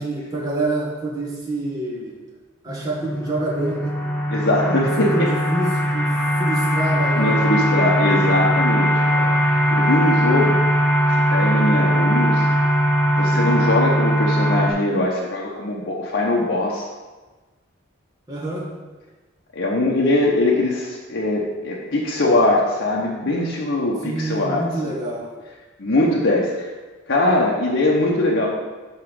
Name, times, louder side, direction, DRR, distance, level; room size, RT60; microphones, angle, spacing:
voice 1, 0.0-2.2 2.6-3.9 4.8-6.1 6.4-7.6 18.3-18.7 24.0-25.3, right 2 dB, 20° right, -5 dB, 1.6 m, -27 dB
sound 1, 2.7-14.7, equal, 5° left, 0.6 m, -20 dB
voice 2, 4.3-5.3 7.2-10.6 11.1-12.5 13.2-16.9 19.5-24.9 25.8-26.7 27.1-28.5, left 1 dB, 65° left, -3 dB, 0.9 m, -21 dB
5.5 x 4.9 x 6.3 m, 1.2 s
head